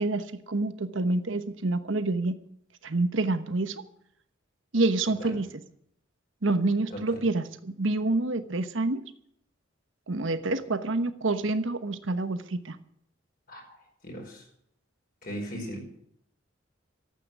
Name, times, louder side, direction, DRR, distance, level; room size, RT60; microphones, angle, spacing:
voice 1, 0.0-2.4 2.8-3.8 4.7-5.5 6.4-9.0 10.1-12.8, right 2 dB, 70° right, 11 dB, 1.1 m, -27 dB
voice 2, 14.0-14.4 15.2-16.0, equal, 45° left, 1 dB, 5.1 m, -38 dB
13.5 x 8.6 x 9.5 m, 0.71 s
head